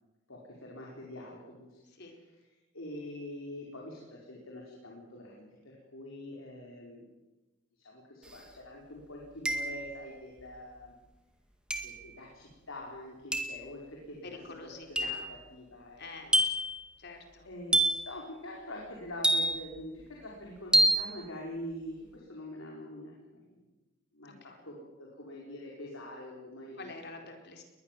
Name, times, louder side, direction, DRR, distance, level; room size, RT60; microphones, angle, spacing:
voice 1, 0.3-1.8 2.7-7.1 7.8-11.0 11.8-14.4 14.9-16.4 17.4-23.7 24.1-24.3 24.6-26.9, left 1 dB, 75° left, -2 dB, 5.1 m, -45 dB
sound 1, 8.3-8.4 9.5-10.0 11.7-12.0 13.3-13.6 15.0-15.3 16.3-16.8 17.7-18.1 19.2-19.8 20.7-21.1, right 1 dB, 5° right, 1.9 m, -27 dB
voice 2, 14.2-15.3 16.0-16.4 17.0-17.5 24.2-24.6 26.8-27.6, left 3 dB, 50° left, 4 dB, 4.3 m, -47 dB
21.5 x 20.5 x 7.6 m, 1.1 s
head